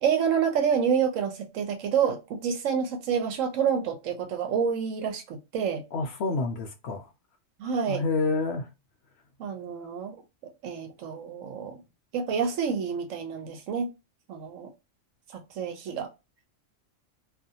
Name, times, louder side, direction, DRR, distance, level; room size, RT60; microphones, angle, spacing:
voice 1, 0.0-5.8 7.6-8.0 9.4-10.2 10.4-11.8 12.1-13.9 14.3-14.7 15.3-16.1, right 7 dB, 80° right, 1.0 m, -28 dB
voice 2, 5.9-7.1 7.9-8.7, left 3 dB, 65° left, 0.7 m, -28 dB
2.5 x 2.3 x 2.6 m
omnidirectional pair, 1.3 m